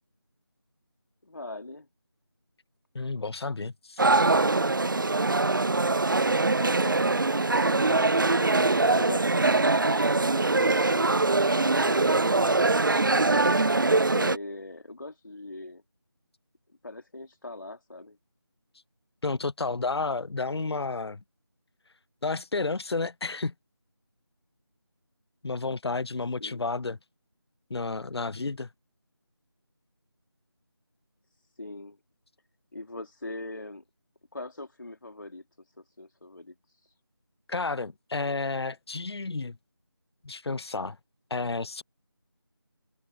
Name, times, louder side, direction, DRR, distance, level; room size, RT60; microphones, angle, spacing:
voice 1, 1.2-1.9 6.6-10.1 13.9-15.8 16.8-18.2 26.4-26.6 31.5-32.0 32.7-33.8 34.3-37.0, left 2 dB, 55° left, 3.1 m, -41 dB
voice 2, 2.9-4.0 19.2-21.2 22.2-23.5 25.4-27.0 27.7-28.7 37.5-39.6 40.2-41.0 41.3-41.8, left 3 dB, 80° left, 0.5 m, -31 dB
sound 1, 4.0-14.4, right 3 dB, 50° right, 0.5 m, -23 dB
figure-of-eight pair, 175°, 13 cm